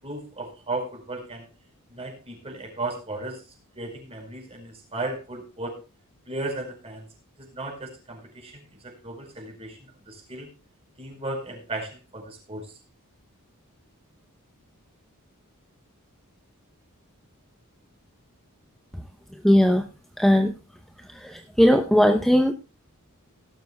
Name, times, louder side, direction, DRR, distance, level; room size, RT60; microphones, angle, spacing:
voice 1, 0.0-1.4 1.9-3.4 3.7-5.7 6.3-7.1 7.4-9.8 10.1-10.5 11.0-12.7, right 2 dB, 25° right, 3 dB, 4.9 m, -35 dB
voice 2, 19.4-19.8 20.2-20.5 21.6-22.5, equal, ahead, 6 dB, 0.7 m, -17 dB
18.0 x 12.5 x 2.3 m, 0.30 s
head